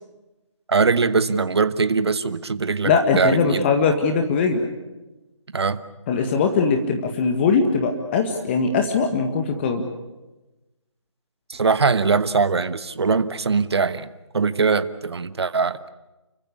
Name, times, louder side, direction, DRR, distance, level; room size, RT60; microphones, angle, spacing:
voice 1, 0.7-3.7 5.5-5.8 11.5-14.1 14.3-15.8, right 4 dB, 55° right, 13 dB, 1.3 m, -21 dB
voice 2, 2.8-4.7 6.1-9.8, left 5 dB, 20° left, 5 dB, 1.8 m, -21 dB
29.5 x 15.5 x 9.9 m, 1.1 s
figure-of-eight pair, 150°, 16 cm